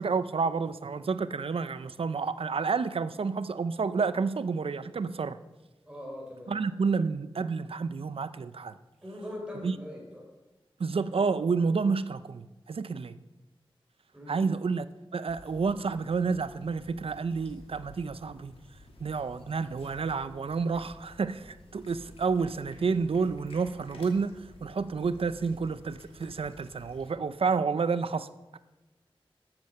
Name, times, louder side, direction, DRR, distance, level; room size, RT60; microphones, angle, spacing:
voice 1, 0.0-5.4 6.5-8.7 9.6-9.8 10.8-13.2 14.3-14.9 15.1-18.5 19.0-28.3, right 5 dB, 80° right, 14 dB, 0.6 m, -30 dB
voice 2, 5.8-6.5 9.0-10.3 14.1-14.4, left 1 dB, 10° right, -2 dB, 4.4 m, -41 dB
sound 1, 15.3-27.1, left 2 dB, 85° left, 2.7 m, -53 dB
13.5 x 8.8 x 6.6 m, 1.1 s
wide cardioid pair, 85°, 10 cm